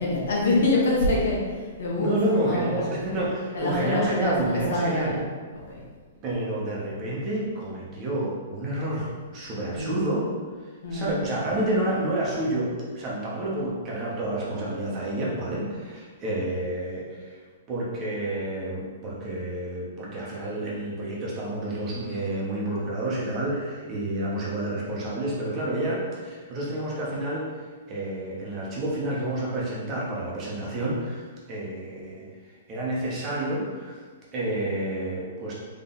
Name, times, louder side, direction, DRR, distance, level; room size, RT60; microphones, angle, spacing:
voice 1, 0.0-3.2 3.5-5.2 5.5-5.8 9.5-10.1 10.8-11.2, left 2 dB, 65° left, -3 dB, 1.3 m, -26 dB
voice 2, 2.0-5.1 6.2-9.1 9.3-10.3 10.9-17.4 17.7-27.5 27.9-31.2 31.5-32.2 32.7-33.9 34.3-35.5, right 1 dB, 25° right, -5 dB, 1.0 m, -29 dB
3.8 x 3.3 x 3.9 m, 1.5 s
hypercardioid pair, 160°, 0 cm